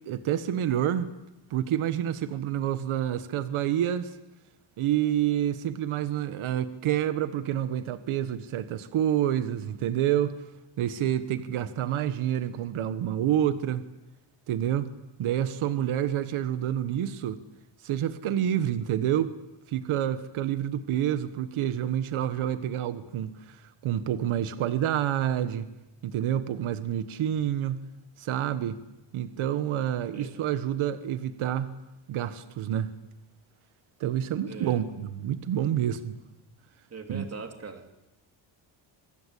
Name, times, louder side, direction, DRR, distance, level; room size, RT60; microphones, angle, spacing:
voice 1, 0.0-1.1 1.5-4.2 4.8-10.4 10.8-13.8 14.5-14.9 15.2-17.4 17.8-19.3 19.7-25.7 26.0-27.8 28.2-28.8 29.1-31.7 32.1-32.9 34.0-36.1 37.1-37.2, right 11 dB, 80° right, 11 dB, 1.6 m, -28 dB
voice 2, 34.5-34.9 36.9-38.0, right 5 dB, 30° right, 5 dB, 3.3 m, -41 dB
27.0 x 25.0 x 8.5 m, 0.96 s
cardioid pair, 145°, 48 cm